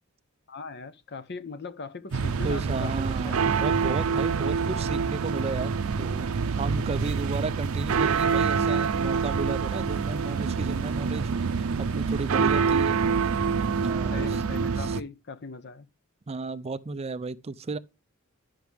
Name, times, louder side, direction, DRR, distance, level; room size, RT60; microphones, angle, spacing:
voice 1, 0.5-2.9 3.2-3.7 14.1-15.9, left 4 dB, 55° left, 0.8 m, -40 dB
sound 1, 2.1-13.9, left 1 dB, 25° left, 2.4 m, -52 dB
sound 2, 2.1-15.0, right 5 dB, 85° right, 0.5 m, -26 dB
voice 2, 2.4-11.3 11.8-13.0 13.8-14.4 14.8-15.0 16.3-17.8, right 3 dB, 30° right, 0.4 m, -33 dB
11.5 x 5.8 x 3.4 m
head